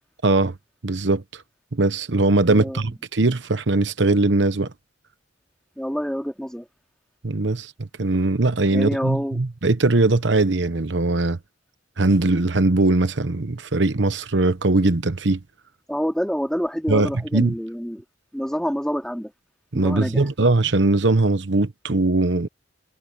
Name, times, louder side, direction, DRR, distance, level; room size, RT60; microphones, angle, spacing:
voice 1, 0.2-0.5 0.8-1.4 1.7-4.7 7.2-11.4 12.0-15.4 16.9-17.5 19.7-22.5, right 2 dB, 75° right, 1.0 m, -20 dB
voice 2, 2.5-2.8 5.8-6.6 8.7-9.4 15.9-18.0 18.3-19.3 19.7-20.2, equal, 5° left, 2.7 m, -27 dB
head